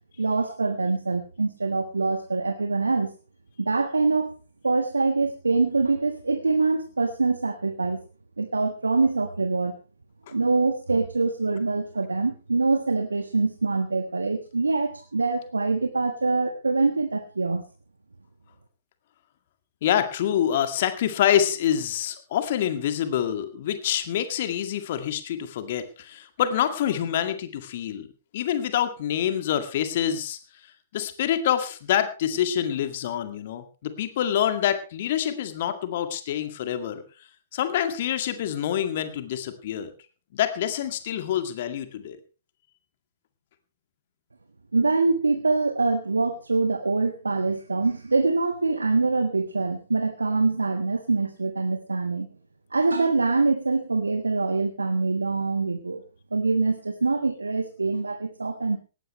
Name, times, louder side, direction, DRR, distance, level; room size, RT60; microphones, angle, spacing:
voice 1, 0.2-3.1 3.6-4.4 4.6-8.0 8.4-9.7 10.3-17.6 44.7-52.3 52.7-56.0 56.3-58.8, right 3 dB, 75° right, 8 dB, 1.5 m, -24 dB
voice 2, 19.8-28.1 28.3-30.4 30.9-37.0 37.5-39.9 40.3-42.2, left 10 dB, 45° left, 9 dB, 2.1 m, -26 dB
18.5 x 15.5 x 3.2 m, 0.34 s
figure-of-eight pair, 115°, 0 cm